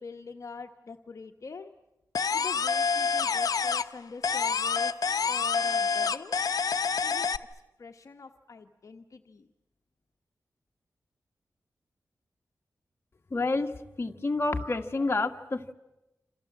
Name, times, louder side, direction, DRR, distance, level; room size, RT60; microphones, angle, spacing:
voice 1, 0.0-1.7 2.3-6.4 7.0-9.5, left 4 dB, 60° left, 5 dB, 1.3 m, -44 dB
sound 1, 2.1-4.0 4.2-7.4, left 5 dB, 80° left, 0.9 m, -27 dB
voice 2, 13.3-13.7 14.0-15.7, left 3 dB, 40° left, 4 dB, 1.8 m, -28 dB
28.0 x 27.5 x 7.5 m, 0.97 s
wide cardioid pair, 90°, 6 cm